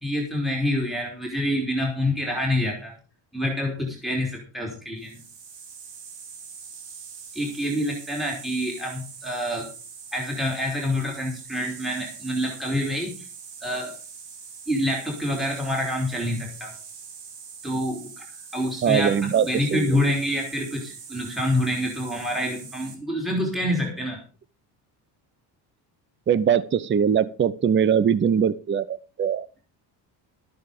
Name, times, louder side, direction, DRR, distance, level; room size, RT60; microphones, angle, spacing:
voice 1, 0.0-2.9 3.3-5.2 7.3-9.7 10.1-13.3 13.6-13.9 14.7-16.7 17.6-18.2 18.5-24.2, left 1 dB, ahead, -1 dB, 3.3 m, -27 dB
sound 1, 5.0-22.9, right 6 dB, 70° right, 3.8 m, -43 dB
voice 2, 18.8-20.0 26.3-29.5, right 8 dB, 25° right, 18 dB, 0.7 m, -22 dB
13.0 x 9.4 x 5.0 m, 0.35 s
cardioid pair, 125°, 43 cm